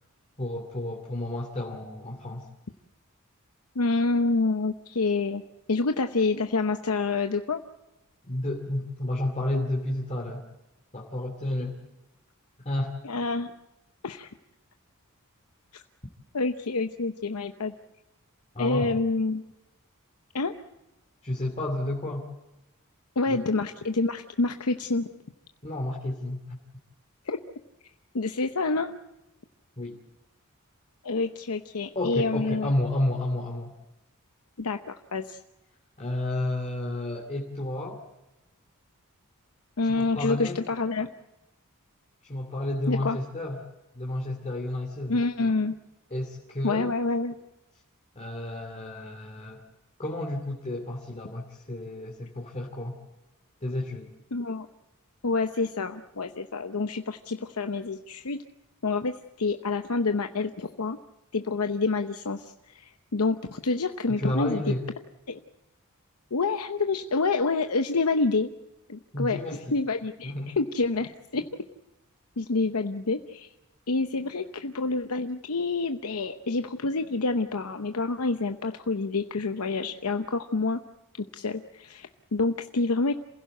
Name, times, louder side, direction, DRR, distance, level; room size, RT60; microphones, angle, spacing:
voice 1, 0.4-2.5 8.2-10.4 10.9-11.8 12.6-12.9 18.5-18.9 21.2-22.3 23.3-23.4 25.6-26.6 29.8-30.0 31.9-33.7 36.0-38.0 39.9-40.7 42.2-43.7 43.9-45.2 46.1-46.9 48.1-49.6 50.0-53.0 53.6-54.1 64.2-64.8 69.1-69.8 70.2-70.5, left 1 dB, 30° left, -1 dB, 2.6 m, -31 dB
voice 2, 3.8-5.4 5.7-7.6 9.5-9.6 13.0-13.5 14.0-14.3 16.3-17.7 18.6-19.4 20.3-20.5 23.2-25.1 27.3-27.4 28.1-28.9 31.0-32.7 34.6-35.4 39.8-41.1 42.9-43.2 45.1-45.7 46.6-47.3 54.3-54.7 55.2-58.4 58.8-61.0 61.3-64.6 65.3-65.4 66.3-68.5 68.9-69.4 69.7-71.5 72.4-73.5 73.9-80.8 81.2-83.1, left 3 dB, 80° left, 7 dB, 0.9 m, -27 dB
28.0 x 16.0 x 7.9 m, 0.97 s
head